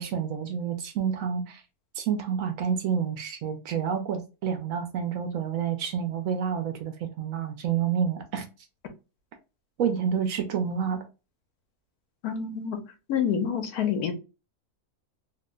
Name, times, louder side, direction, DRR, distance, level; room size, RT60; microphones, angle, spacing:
voice 1, 0.0-1.6 1.9-8.4 9.8-11.0, right 7 dB, 70° right, 1.0 m, -29 dB
voice 2, 12.2-12.8 13.1-14.1, left 8 dB, 80° left, 1.2 m, -27 dB
2.9 x 2.1 x 3.6 m
omnidirectional pair, 1.6 m